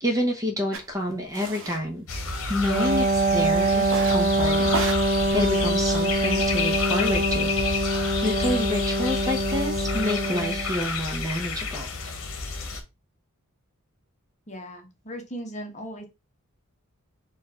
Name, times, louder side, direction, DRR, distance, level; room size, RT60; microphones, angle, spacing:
voice 1, 0.0-2.0 2.5-7.8 8.2-11.9, left 1 dB, 15° right, 3 dB, 0.8 m, -28 dB
sound 1, 0.7-0.8 1.3-1.8 2.1-2.9 3.8-4.3 4.6-6.4, right 3 dB, 65° right, 1.0 m, -34 dB
sound 2, 2.1-12.8, left 4 dB, 65° left, 1.2 m, -30 dB
Wind instrument woodwind instrument, 2.7-10.8, right 2 dB, 40° right, 0.5 m, -24 dB
voice 2, 14.5-16.1, equal, 35° left, 2 dB, 1.2 m, -37 dB
4.4 x 2.5 x 4.3 m, 0.24 s
head